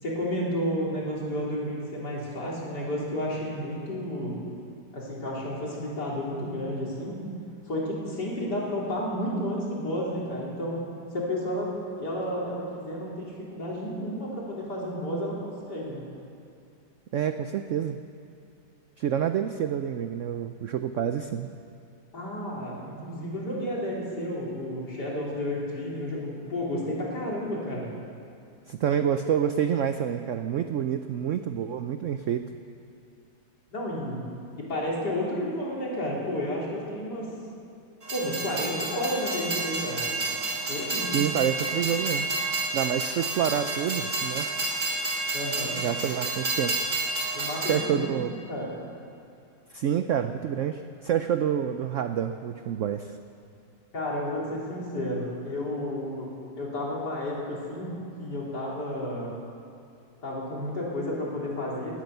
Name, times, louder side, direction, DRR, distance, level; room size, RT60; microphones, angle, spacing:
voice 1, 0.0-4.4 4.9-7.2 7.7-10.8 11.1-11.7 12.0-16.0 22.1-27.9 33.7-34.2 34.7-37.3 38.1-40.0 40.7-41.1 45.3-45.7 47.3-48.7 53.9-57.9 58.2-59.3 60.2-62.0, left 1 dB, 65° left, -5 dB, 4.0 m, -31 dB
voice 2, 17.1-18.0 19.0-21.5 28.7-32.5 41.0-42.3 42.7-44.5 45.8-46.8 47.6-48.3 49.7-53.2, right 9 dB, 75° right, 9 dB, 0.7 m, -28 dB
Train, 38.0-47.8, right 2 dB, 35° right, 2.4 m, -30 dB
18.5 x 11.5 x 6.7 m, 2.5 s
omnidirectional pair, 1.9 m